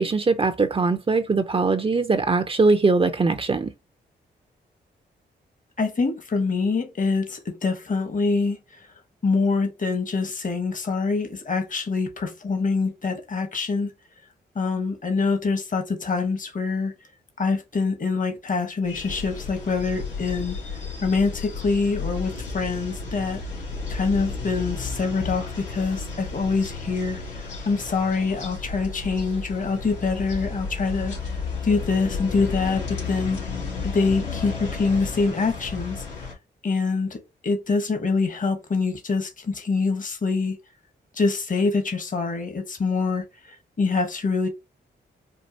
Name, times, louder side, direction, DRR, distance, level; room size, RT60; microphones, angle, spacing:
voice 1, 0.0-3.7, right 3 dB, 30° right, 0.6 m, -21 dB
voice 2, 5.8-8.6 9.2-13.9 14.5-16.9 17.4-20.6 21.0-23.4 23.9-27.2 27.7-31.1 31.6-33.4 33.8-36.0 36.6-40.6 41.2-43.2 43.8-44.5, left 4 dB, 45° left, 1.2 m, -25 dB
sound 1, 18.8-36.3, left 4 dB, 85° left, 2.5 m, -33 dB
4.6 x 2.4 x 2.8 m
cardioid pair, 60°, 19 cm